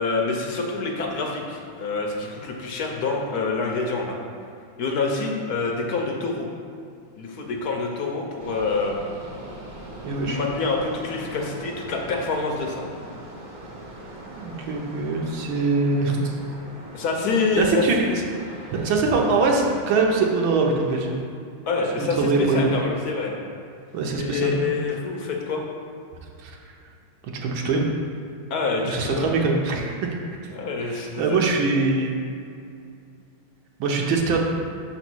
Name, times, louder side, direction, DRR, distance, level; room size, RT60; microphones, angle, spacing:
voice 1, 0.0-4.2 4.8-6.5 7.2-9.0 10.3-12.9 16.9-17.9 21.7-23.3 24.2-25.6 28.5-29.3 30.5-31.4, left 4 dB, 60° left, 1 dB, 1.1 m, -26 dB
sound 1, 8.4-21.0, right 1 dB, 40° right, 0.7 m, -41 dB
voice 2, 10.0-10.4 14.3-16.4 17.6-18.2 18.7-21.2 22.0-22.6 23.9-24.6 26.4-26.6 27.4-27.9 28.8-30.2 30.8-32.3 33.8-34.4, right 3 dB, 75° right, 0 dB, 1.6 m, -23 dB
6.2 x 4.0 x 6.1 m, 2.4 s
omnidirectional pair, 2.2 m